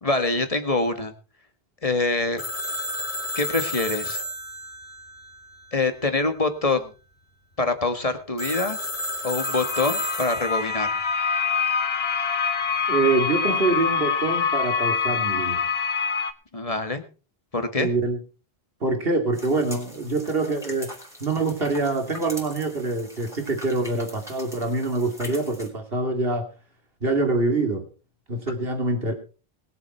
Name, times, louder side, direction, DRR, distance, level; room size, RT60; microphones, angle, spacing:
voice 1, 0.0-1.1 1.8-2.4 3.3-4.2 5.7-6.9 7.6-8.8 9.2-11.0 16.5-17.0 17.5-17.9, left 3 dB, 35° left, 8 dB, 1.7 m, -25 dB
Telephone, 2.4-6.0 8.4-10.9, equal, 55° left, 2.3 m, -32 dB
sound 1, 9.4-16.3, left 6 dB, 75° left, 1.3 m, -25 dB
voice 2, 12.9-15.6 17.8-18.2 18.8-20.9 21.2-26.5 27.0-27.9 28.3-29.1, right 3 dB, 70° right, 5 dB, 2.9 m, -25 dB
sound 2, 19.3-25.7, equal, 5° right, 4.7 m, -42 dB
20.5 x 7.9 x 4.4 m, 0.35 s
omnidirectional pair, 1.0 m